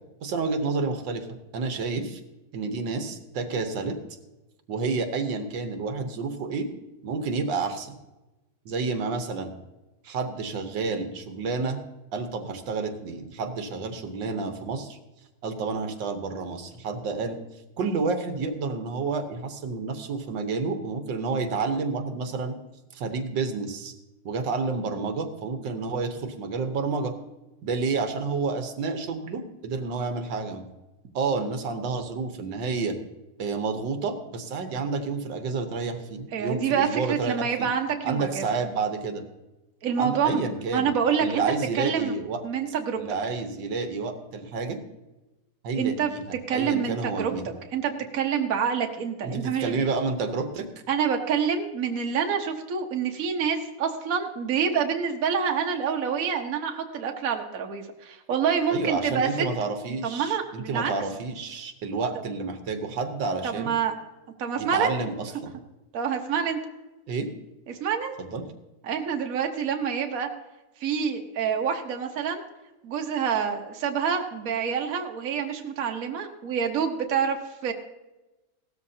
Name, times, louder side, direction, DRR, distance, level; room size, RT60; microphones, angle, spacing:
voice 1, 0.2-1.3 1.5-2.2 2.5-4.0 4.7-6.7 7.0-7.9 8.7-9.5 10.0-11.8 12.1-15.0 15.4-17.4 17.8-22.6 22.9-23.9 24.3-27.1 27.6-30.6 31.2-33.0 33.4-37.7 38.0-39.2 40.0-40.9 41.2-42.4 43.0-44.8 45.6-46.2 46.5-47.5 49.2-50.7 58.7-63.7 64.6-65.5 67.1-67.3 68.2-68.4, right 4 dB, 85° right, 7 dB, 1.8 m, -29 dB
voice 2, 36.3-38.4 39.8-40.4 40.7-41.4 41.7-42.1 42.4-43.0 45.7-46.1 46.5-47.3 47.7-49.8 50.9-59.3 60.0-60.9 63.4-63.9 64.4-64.9 65.9-66.6 67.7-68.1 68.8-70.3 70.8-72.4 72.8-77.4 77.6-77.7, right 7 dB, 55° right, 3 dB, 1.4 m, -27 dB
17.0 x 13.0 x 2.8 m, 1.0 s
omnidirectional pair, 1.9 m